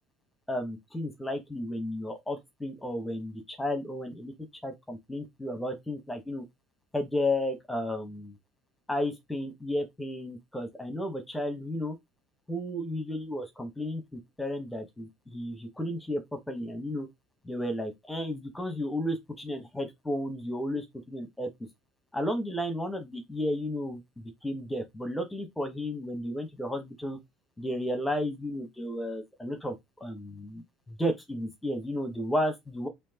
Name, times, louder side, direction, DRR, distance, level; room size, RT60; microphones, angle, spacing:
voice 1, 0.5-4.3 4.6-6.4 6.9-8.4 8.9-12.0 12.5-17.1 17.4-21.5 22.1-27.2 27.6-29.7 30.0-30.6 30.9-32.9, left 1 dB, 5° left, 1.1 m, -33 dB
4.5 x 2.7 x 2.8 m
cardioid pair, 135°, 0 cm